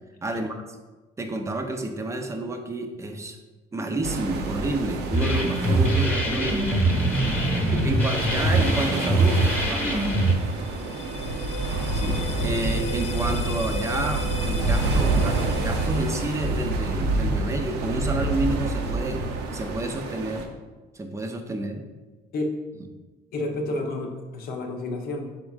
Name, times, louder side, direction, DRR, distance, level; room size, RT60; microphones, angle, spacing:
voice 1, 0.2-0.6 1.2-3.4 3.7-6.8 7.7-10.2 11.9-19.2 19.5-20.5 20.9-21.9, right 2 dB, 15° right, 5 dB, 0.5 m, -30 dB
sound 1, 4.0-20.5, right 2 dB, 75° right, 0.6 m, -28 dB
sound 2, 5.1-10.3, right 1 dB, 10° left, 1.0 m, -23 dB
voice 2, 7.1-7.7 11.2-11.4 22.3-22.6 23.3-25.3, left 2 dB, 60° left, 3 dB, 0.8 m, -31 dB
sound 3, 10.1-17.1, left 2 dB, 40° left, 0.4 m, -37 dB
5.0 x 4.3 x 2.4 m, 1.2 s
cardioid pair, 110°, 17 cm